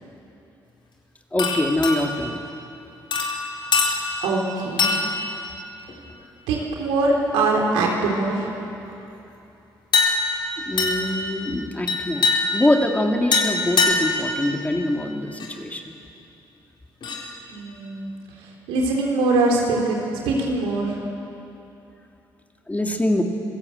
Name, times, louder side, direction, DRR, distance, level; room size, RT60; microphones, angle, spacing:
voice 1, 1.3-2.4 10.6-15.9 22.7-23.2, left 1 dB, 15° left, 3 dB, 2.8 m, -24 dB
sound 1, 1.4-2.3 3.1-4.3 4.8-5.3 5.9-6.1 9.9-10.4 10.8-11.2 11.9-12.7 13.3-14.3 15.4-15.5 17.0-17.3, left 3 dB, 55° left, 4.6 m, -23 dB
voice 2, 3.8-5.0 6.5-8.5 17.5-18.1 18.4-21.0, right 2 dB, 90° right, -1 dB, 3.9 m, -23 dB
26.5 x 17.0 x 8.0 m, 2.9 s
supercardioid pair, 55°, 9 cm